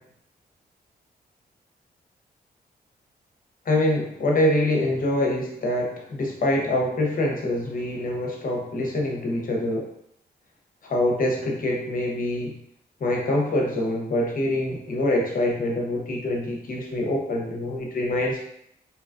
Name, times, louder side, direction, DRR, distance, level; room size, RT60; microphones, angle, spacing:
voice 1, 3.7-9.9 10.8-12.6 13.0-18.4, left 1 dB, 55° left, 0 dB, 0.8 m, -25 dB
2.8 x 2.3 x 2.5 m, 0.72 s
cardioid pair, 85°, 17 cm